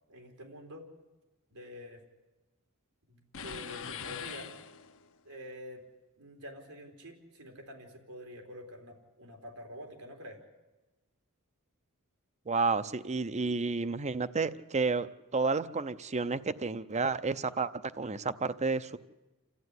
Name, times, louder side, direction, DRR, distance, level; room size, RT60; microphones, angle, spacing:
voice 1, 0.1-0.8 1.5-2.0 3.1-4.5 5.3-5.8 6.2-10.4, equal, 90° right, 3 dB, 3.7 m, -47 dB
sound 1, 3.3-5.2, left 7 dB, 60° left, 1.0 m, -42 dB
voice 2, 12.5-15.1 15.3-19.0, right 4 dB, 30° right, 14 dB, 0.7 m, -31 dB
28.0 x 14.0 x 9.6 m, 1.1 s
head